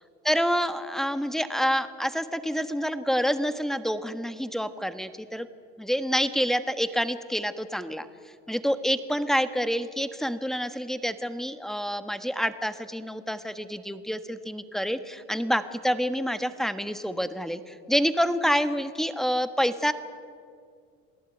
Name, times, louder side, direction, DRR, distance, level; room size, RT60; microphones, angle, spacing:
voice 1, 0.2-5.5 5.8-8.1 8.5-19.9, equal, ahead, 10 dB, 1.4 m, -27 dB
27.5 x 17.5 x 9.2 m, 2.2 s
supercardioid pair, 115°, 31 cm